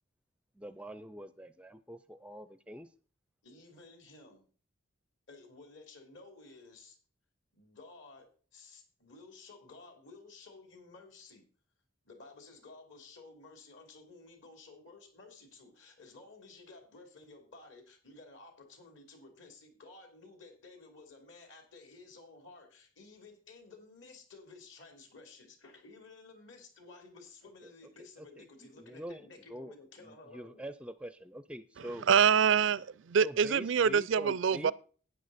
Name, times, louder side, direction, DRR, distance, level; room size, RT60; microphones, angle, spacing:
voice 1, 0.6-2.9 28.0-28.1 28.4-28.5 28.8-29.2 29.5-29.7 30.0-32.1 33.2-34.7, equal, 5° right, 0.4 m, -44 dB
voice 2, 3.4-4.5 5.3-7.0 7.5-11.4 12.0-30.7, left 3 dB, 65° left, 3.2 m, -54 dB
voice 3, 32.1-34.7, right 7 dB, 65° right, 0.4 m, -25 dB
11.5 x 9.3 x 4.2 m
head